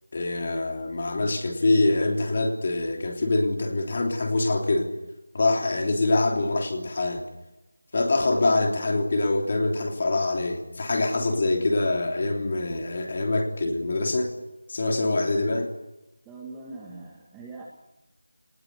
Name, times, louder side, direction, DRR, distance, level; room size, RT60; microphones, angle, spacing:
voice 1, 0.1-4.9 5.3-7.2 7.9-14.3 14.7-15.7, left 2 dB, 30° left, 3 dB, 3.2 m, -24 dB
voice 2, 16.2-17.7, right 3 dB, 5° right, -3 dB, 1.5 m, -41 dB
28.5 x 19.5 x 8.1 m, 0.95 s
figure-of-eight pair, 175°, 0 cm